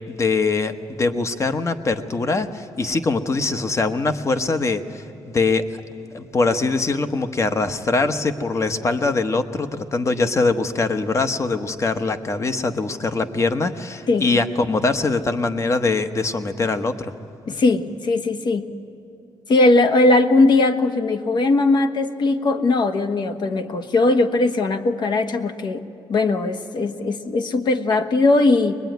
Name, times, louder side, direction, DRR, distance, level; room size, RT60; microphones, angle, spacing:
voice 1, 0.1-5.6 6.1-17.1, left 3 dB, 30° left, 9 dB, 1.1 m, -22 dB
voice 2, 17.5-18.6 19.5-25.8 26.1-28.7, left 2 dB, 55° left, 8 dB, 1.3 m, -19 dB
23.0 x 21.0 x 9.3 m, 2.9 s
cardioid pair, 115°, 9 cm